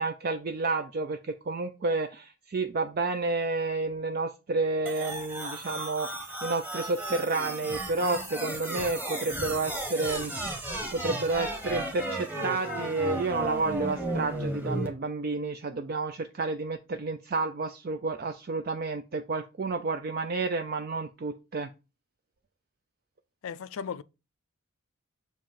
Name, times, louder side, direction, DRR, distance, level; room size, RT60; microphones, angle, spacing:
voice 1, 0.0-21.7, right 3 dB, 45° right, 0.4 m, -30 dB
sound 1, 4.9-14.9, right 1 dB, 10° right, 1.1 m, -34 dB
voice 2, 23.4-24.0, left 6 dB, 70° left, 0.4 m, -36 dB
7.1 x 2.6 x 5.6 m
head